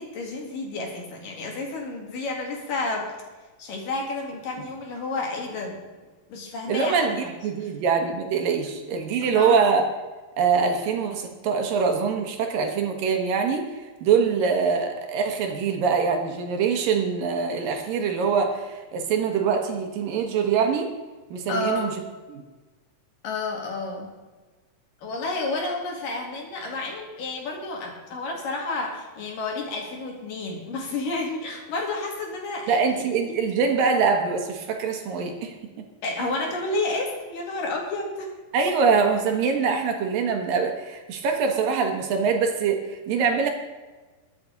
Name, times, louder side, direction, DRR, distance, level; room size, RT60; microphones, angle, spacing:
voice 1, 0.0-3.1 3.6-5.8 6.3-7.1 7.6-7.7 9.2-9.6 21.5-21.9 23.2-24.1 25.0-32.9 33.3-33.4 36.0-38.3, left 2 dB, 60° left, 0 dB, 3.7 m, -30 dB
voice 2, 6.7-9.8 10.4-20.9 21.3-21.9 22.3-22.4 32.7-35.5 38.5-43.5, right 5 dB, 70° right, 4 dB, 2.8 m, -24 dB
22.0 x 8.4 x 4.0 m, 1.3 s
omnidirectional pair, 4.4 m